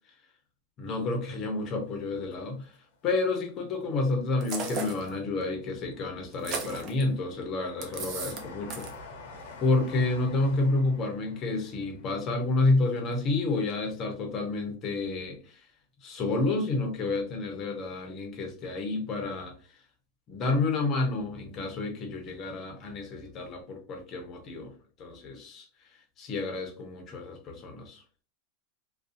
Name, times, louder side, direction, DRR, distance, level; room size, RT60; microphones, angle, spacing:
voice 1, 0.8-2.7 3.0-8.9 9.6-15.6 16.0-19.5 20.3-24.7 25.0-25.7 26.2-28.0, left 3 dB, 35° left, 3 dB, 0.8 m, -29 dB
Train, 1.9-3.1 3.6-4.6 5.1-13.8 14.1-14.2, left 4 dB, 70° left, 0.8 m, -49 dB
sound 1, 4.4-5.1 6.3-7.0 7.8-8.4 8.7-8.9, right 4 dB, 35° right, 0.6 m, -35 dB
2.5 x 2.3 x 2.5 m, 0.39 s
supercardioid pair, 150°, 0 cm